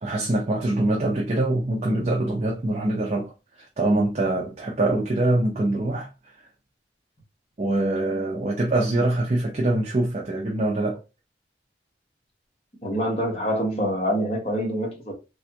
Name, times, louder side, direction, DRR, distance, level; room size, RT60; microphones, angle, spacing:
voice 1, 0.0-6.1 7.6-11.0, right 2 dB, 35° right, 0.5 m, -24 dB
voice 2, 12.8-15.1, equal, 35° left, 1.1 m, -25 dB
3.3 x 2.3 x 2.8 m
head